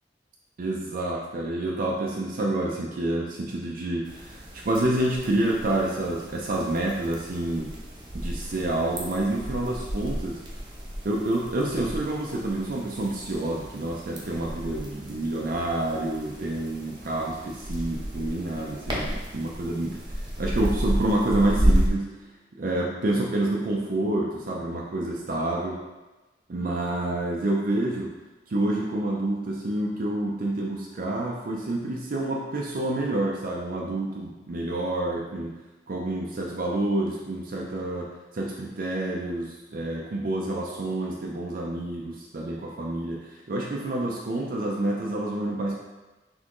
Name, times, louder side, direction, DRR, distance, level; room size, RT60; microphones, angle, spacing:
voice 1, 0.6-7.7 8.1-10.4 11.0-20.0 20.4-22.2 22.6-25.8 26.5-28.1 28.5-35.5 35.9-38.1 38.3-45.8, right 1 dB, 50° right, -2 dB, 0.5 m, -28 dB
sound 1, 4.0-21.9, equal, 25° right, 0.8 m, -32 dB
4.3 x 3.4 x 3.0 m, 1.1 s
head